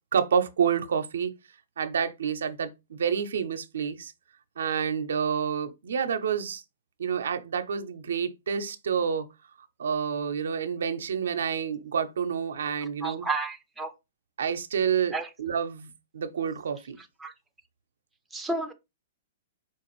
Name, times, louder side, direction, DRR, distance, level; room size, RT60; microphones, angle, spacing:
voice 1, 0.1-1.3 1.8-4.1 4.6-6.6 7.0-9.3 9.8-13.2 14.4-17.0, right 7 dB, 85° right, 0.5 m, -28 dB
voice 2, 13.0-13.9 15.1-15.3 17.2-17.3 18.3-18.7, right 3 dB, 5° right, 0.5 m, -31 dB
4.5 x 2.5 x 3.0 m
hypercardioid pair, 150°, 0 cm